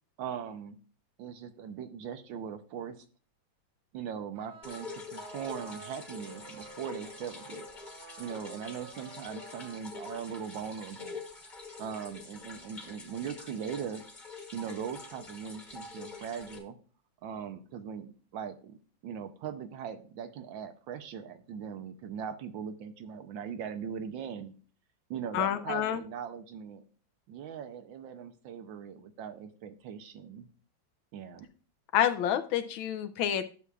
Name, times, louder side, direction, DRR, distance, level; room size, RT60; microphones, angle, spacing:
voice 1, 0.2-0.8 1.2-3.0 3.9-7.7 8.2-14.0 14.5-16.7 17.2-24.5 25.1-26.8 27.3-30.5 31.1-31.5, right 7 dB, 75° right, 8 dB, 1.5 m, -40 dB
sound 1, 4.3-9.8, right 4 dB, 50° right, 0.9 m, -50 dB
sound 2, 4.6-16.6, left 4 dB, 30° left, 1.1 m, -46 dB
voice 2, 25.3-26.0 31.9-33.5, left 10 dB, 90° left, 10 dB, 1.5 m, -28 dB
11.0 x 6.8 x 2.4 m, 0.39 s
omnidirectional pair, 2.1 m